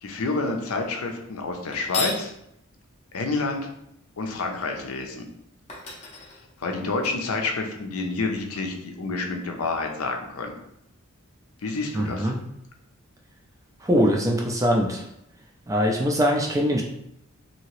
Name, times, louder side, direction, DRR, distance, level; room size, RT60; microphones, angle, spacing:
voice 1, 0.0-2.3 3.1-3.7 4.2-5.3 6.6-10.5 11.6-12.3, left 3 dB, 75° left, 3 dB, 0.5 m, -28 dB
sound 1, 1.7-2.3 5.2-5.3 5.7-7.1, left 3 dB, 30° left, 0.6 m, -33 dB
voice 2, 11.9-12.4 13.8-15.0 15.7-16.8, equal, 15° right, 1 dB, 0.3 m, -22 dB
2.8 x 2.8 x 3.0 m, 0.76 s
head